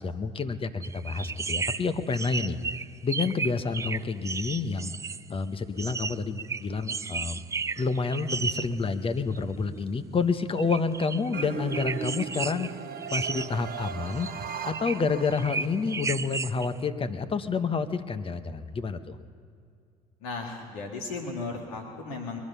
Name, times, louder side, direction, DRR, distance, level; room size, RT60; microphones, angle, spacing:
voice 1, 0.0-2.6 3.0-4.9 5.3-7.4 7.8-12.7 13.1-14.3 14.6-19.2, left 4 dB, 30° left, 9 dB, 1.1 m, -29 dB
sound 1, 0.8-5.3 5.8-8.8 9.3-9.4 10.6-11.4 11.7-12.7 13.0-15.0 15.3-16.7, right 5 dB, 15° right, 0.3 m, -34 dB
sound 2, 11.3-16.0, right 7 dB, 55° right, 1.1 m, -38 dB
voice 2, 20.2-22.4, left 3 dB, 80° left, 2 dB, 1.9 m, -35 dB
22.0 x 10.5 x 5.6 m, 2.4 s
hypercardioid pair, 60°, 19 cm